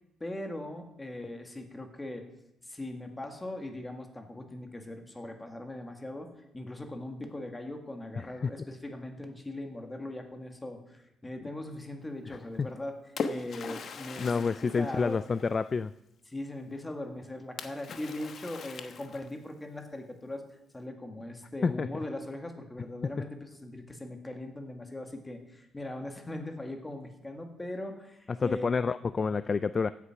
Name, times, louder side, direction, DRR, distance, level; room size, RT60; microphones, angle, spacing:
voice 1, 0.2-2.2 2.6-13.0 13.3-14.5 14.8-15.2 16.3-20.4 20.7-28.7, left 1 dB, 15° left, 5 dB, 2.0 m, -40 dB
Splash splatter, 12.6-15.8 17.6-19.5, left 5 dB, 50° left, 1.2 m, -40 dB
voice 2, 14.2-15.9 21.6-21.9 28.3-29.9, left 5 dB, 35° left, 15 dB, 0.3 m, -28 dB
16.0 x 8.3 x 6.0 m, 0.84 s
cardioid pair, 115°, 0 cm